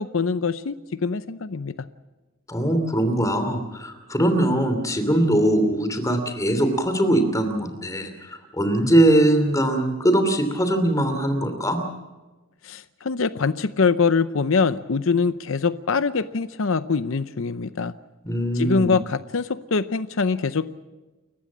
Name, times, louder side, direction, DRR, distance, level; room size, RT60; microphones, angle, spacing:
voice 1, 0.0-1.7 12.6-17.9 18.5-20.7, left 4 dB, 60° left, 14 dB, 0.6 m, -23 dB
voice 2, 2.5-11.8 18.2-18.9, right 1 dB, 15° left, 7 dB, 2.9 m, -21 dB
29.5 x 15.0 x 7.4 m, 1.2 s
head